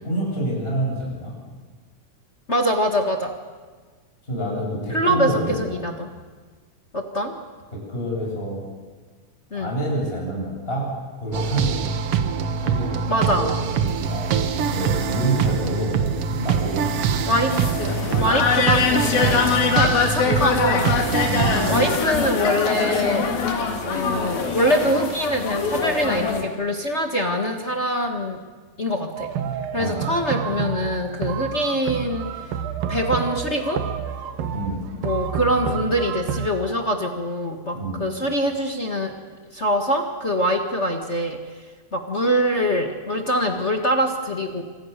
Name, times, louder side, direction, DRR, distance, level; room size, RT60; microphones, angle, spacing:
voice 1, 0.0-1.4 4.3-5.8 7.7-8.6 9.5-11.8 12.6-17.3 21.2-21.6 29.7-30.0 34.5-34.8 37.7-38.0, right 1 dB, 15° left, -2 dB, 7.4 m, -28 dB
voice 2, 2.5-3.3 4.9-6.1 6.9-7.3 9.5-9.7 13.1-13.5 17.3-17.5 18.2-20.9 21.7-23.3 23.8-28.4 28.8-29.3 29.7-32.5 32.9-33.8 35.0-39.1 39.5-41.6 41.9-44.6, equal, 35° left, 3 dB, 1.1 m, -24 dB
sound 1, 11.3-22.0, right 6 dB, 60° right, 1.6 m, -24 dB
sound 2, 17.5-26.4, left 5 dB, 85° left, 4.4 m, -23 dB
sound 3, 29.2-36.5, right 8 dB, 80° right, 3.0 m, -29 dB
27.0 x 26.0 x 6.8 m, 1.4 s
omnidirectional pair, 4.1 m